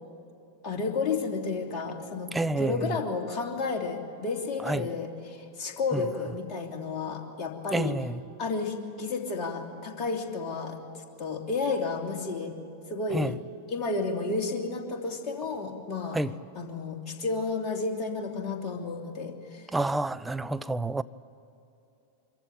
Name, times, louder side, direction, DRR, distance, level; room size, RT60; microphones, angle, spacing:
voice 1, 0.6-2.3 2.6-8.0 8.4-12.5 12.9-13.4 13.7-16.2 16.5-19.7, left 4 dB, 30° left, 2.9 m, -32 dB
voice 2, 2.3-3.0 4.6-4.9 5.9-6.0 7.7-8.2 13.1-13.3 16.1-16.3 19.7-21.0, right 2 dB, 10° right, 0.5 m, -28 dB
25.0 x 14.5 x 9.1 m
figure-of-eight pair, 90°, 0 cm